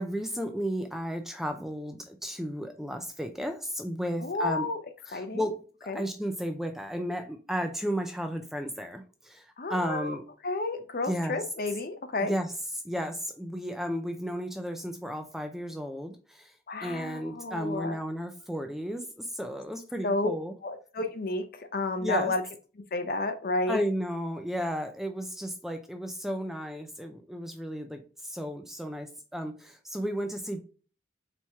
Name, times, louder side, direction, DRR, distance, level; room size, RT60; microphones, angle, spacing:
voice 1, 0.0-4.7 5.1-5.6 5.8-10.2 11.1-11.4 12.2-12.5 12.8-16.5 16.8-20.5 22.0-22.3 23.7-30.6, equal, ahead, 0.4 m, -33 dB
voice 2, 4.2-4.8 5.1-5.5 5.9-6.0 9.6-10.2 10.4-12.4 16.7-18.0 20.0-20.3 20.6-22.4 22.9-23.8, left 2 dB, 50° left, 0.6 m, -31 dB
4.2 x 3.0 x 3.4 m
head